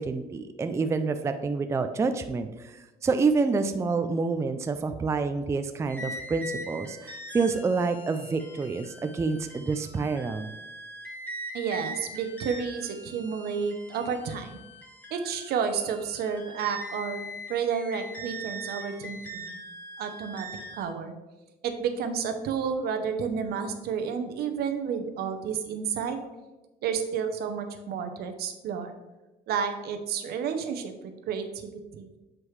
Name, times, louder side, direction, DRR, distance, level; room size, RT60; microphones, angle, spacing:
voice 1, 0.0-10.5, right 4 dB, 15° right, 8 dB, 0.3 m, -28 dB
sound 1, 5.9-20.8, right 1 dB, 10° left, 1.8 m, -41 dB
voice 2, 11.5-14.6 15.1-19.6 20.0-20.5 20.7-21.1 21.6-26.2 26.8-28.9 29.5-32.2, right 6 dB, 70° right, 7 dB, 0.8 m, -31 dB
7.4 x 4.7 x 3.2 m, 1.1 s
cardioid pair, 110°, 17 cm